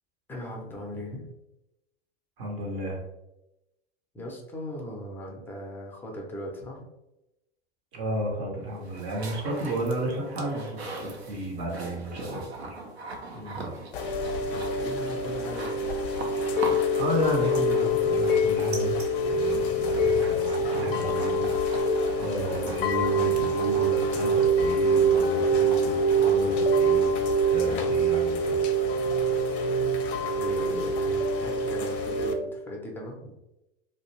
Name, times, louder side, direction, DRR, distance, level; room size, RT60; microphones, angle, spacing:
voice 1, 0.3-1.3 4.1-6.8 12.2-12.5 13.3-13.7 14.5-15.8 19.5-19.9 27.7-27.9 30.3-33.4, left 1 dB, 5° left, -1 dB, 0.5 m, -39 dB
voice 2, 2.4-3.0 7.9-12.7 13.5-13.7 16.9-19.0 19.2-21.9 22.2-27.1 27.4-28.6, right 1 dB, 45° right, -1 dB, 0.7 m, -33 dB
sound 1, 8.6-26.7, right 2 dB, 80° right, 0.6 m, -41 dB
Chime / Rain, 13.9-32.3, right 1 dB, 60° left, 0.5 m, -25 dB
2.4 x 2.0 x 2.9 m, 0.91 s
figure-of-eight pair, 95°, 31 cm